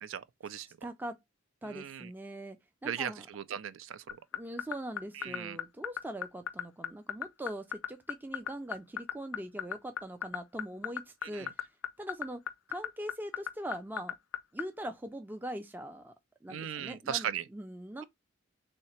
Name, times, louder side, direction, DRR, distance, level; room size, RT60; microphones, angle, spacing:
voice 1, 0.0-0.7 1.6-2.1 2.8-4.0 5.1-5.6 11.3-11.5 16.5-17.4, right 9 dB, 75° right, 0.4 m, -37 dB
voice 2, 0.8-1.2 1.6-2.6 2.8-3.3 4.3-11.5 12.0-14.1 14.5-16.1 16.4-18.0, right 1 dB, 10° right, 0.3 m, -41 dB
sound 1, 4.1-14.6, left 9 dB, 90° left, 0.5 m, -34 dB
3.2 x 2.9 x 4.2 m
head